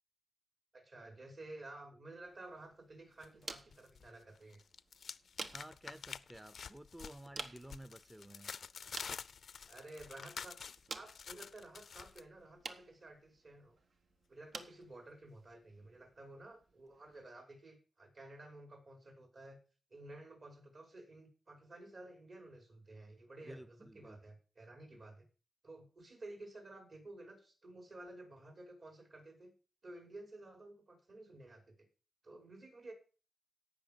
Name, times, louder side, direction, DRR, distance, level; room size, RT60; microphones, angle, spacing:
voice 1, 0.7-4.6 9.7-10.6 10.9-13.8 14.3-19.6 19.9-25.2 25.6-29.5 29.8-31.7 32.2-32.9, right 2 dB, 60° right, 5.6 m, -53 dB
sound 1, 2.2-17.3, right 4 dB, 75° right, 1.2 m, -53 dB
sound 2, 3.2-4.1 4.4-12.2, left 6 dB, 80° left, 0.5 m, -49 dB
voice 2, 5.5-8.6 23.4-24.2 24.9-25.0, right 1 dB, 10° right, 0.6 m, -53 dB
17.0 x 6.2 x 5.2 m
wide cardioid pair, 85°, 0 cm